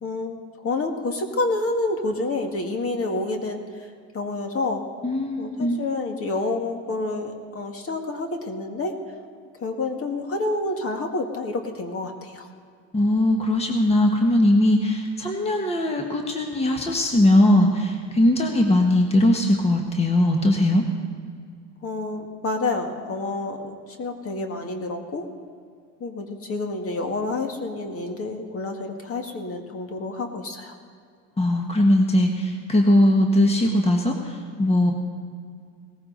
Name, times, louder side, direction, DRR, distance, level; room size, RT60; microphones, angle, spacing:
voice 1, 0.0-3.9 4.1-4.8 5.4-9.0 9.6-12.5 21.8-25.3 26.0-30.8, left 2 dB, 35° left, 4 dB, 2.0 m, -28 dB
voice 2, 5.0-5.8 12.9-20.8 31.4-34.9, left 1 dB, 15° left, 2 dB, 1.5 m, -20 dB
18.5 x 14.5 x 4.0 m, 2.2 s
supercardioid pair, 95°, 37 cm